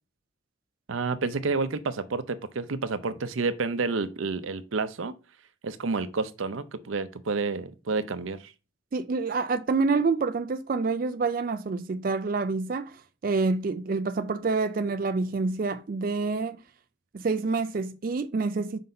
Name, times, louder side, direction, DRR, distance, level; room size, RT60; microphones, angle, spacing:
voice 1, 0.9-5.1 5.6-8.5, right 4 dB, 85° right, 0.6 m, -29 dB
voice 2, 8.9-16.6 17.1-18.8, right 4 dB, 45° right, 0.4 m, -27 dB
5.4 x 4.0 x 5.3 m
head